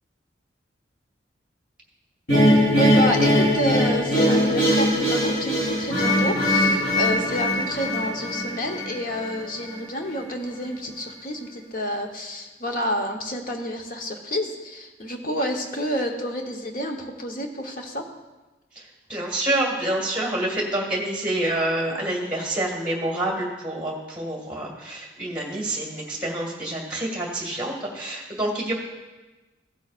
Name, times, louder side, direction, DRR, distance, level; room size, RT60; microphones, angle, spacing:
sound 1, 2.3-9.4, equal, 65° left, 3.5 m, -21 dB
voice 1, 2.8-18.0, equal, 45° left, 3 dB, 1.1 m, -29 dB
voice 2, 19.1-28.7, right 1 dB, 5° right, -2 dB, 2.0 m, -27 dB
16.0 x 8.1 x 2.5 m, 1.1 s
head